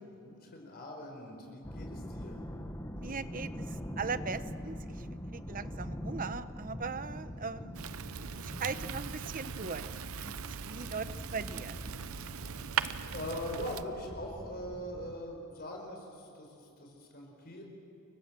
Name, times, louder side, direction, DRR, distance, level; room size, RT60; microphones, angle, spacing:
voice 1, 0.0-2.5 7.2-7.7 13.1-17.6, equal, 50° left, 1 dB, 5.0 m, -42 dB
sound 1, 1.6-15.1, equal, 15° left, 1.3 m, -44 dB
voice 2, 2.9-5.1 5.3-7.8 8.4-11.8, right 5 dB, 40° right, 12 dB, 0.9 m, -40 dB
Fire, 7.7-13.8, right 7 dB, 85° right, 0.8 m, -39 dB
29.0 x 24.0 x 7.5 m, 2.7 s
head